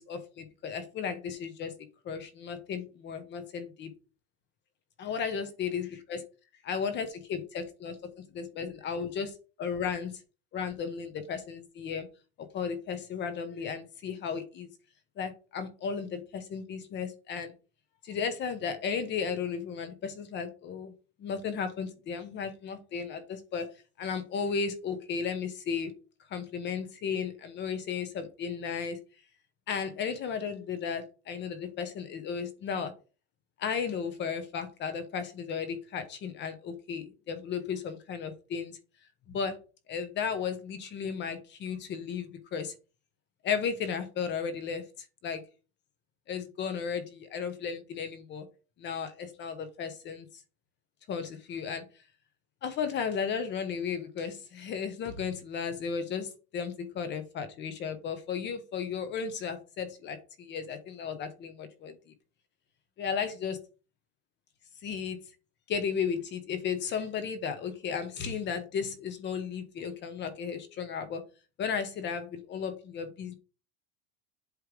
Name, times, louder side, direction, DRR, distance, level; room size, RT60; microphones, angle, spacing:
voice 1, 0.0-1.7 2.0-3.9 5.0-6.2 6.6-9.3 9.6-10.2 10.5-12.1 12.5-14.7 15.2-17.5 18.0-20.9 21.2-23.7 24.0-25.9 26.3-29.0 29.7-32.9 33.6-38.8 39.3-39.6 39.9-42.7 43.4-44.8 45.2-45.4 46.3-48.5 48.8-50.3 51.1-51.8 52.6-61.9 63.0-63.6 64.8-65.2 65.7-71.2 71.6-73.3, left 6 dB, 30° left, 10 dB, 1.0 m, -34 dB
8.1 x 3.2 x 5.1 m, 0.34 s
supercardioid pair, 155°, 34 cm